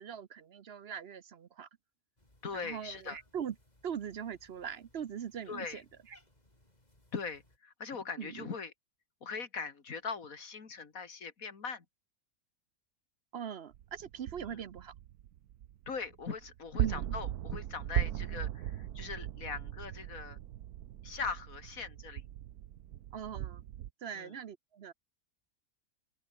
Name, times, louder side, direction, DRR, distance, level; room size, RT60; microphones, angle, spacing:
voice 1, 0.0-1.7 2.5-3.5 3.8-6.2 8.2-8.5 13.3-14.9 16.8-17.1 23.1-23.7 24.0-24.9, right 8 dB, 55° right, 0.8 m, -41 dB
Cat, 2.2-7.6, left 1 dB, 25° left, 5.8 m, -66 dB
voice 2, 2.4-3.2 5.5-5.8 7.1-8.7 9.2-11.8 14.4-14.6 15.9-20.4 21.0-22.2 24.1-24.4, left 5 dB, 65° left, 2.5 m, -41 dB
sound 1, 13.7-23.9, right 12 dB, 90° right, 1.3 m, -38 dB
open air
omnidirectional pair, 1.6 m